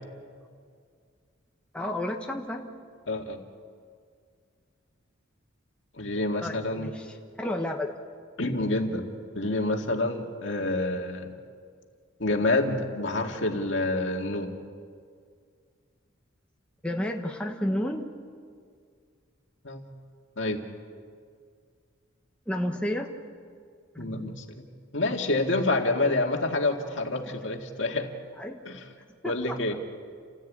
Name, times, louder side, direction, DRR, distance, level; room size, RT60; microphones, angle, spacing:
voice 1, 1.7-2.9 6.4-7.9 16.8-18.1 22.5-23.1 23.9-24.4 28.4-28.6 29.2-29.8, left 1 dB, 5° left, 1 dB, 1.2 m, -32 dB
voice 2, 3.1-3.4 6.0-6.9 8.4-9.0 9.3-11.3 12.2-14.5 19.6-19.8 20.4-20.6 24.0-24.7 24.9-28.1 28.7-28.8 29.2-29.7, left 2 dB, 65° left, 3 dB, 2.1 m, -27 dB
29.5 x 15.0 x 8.7 m, 2.1 s
head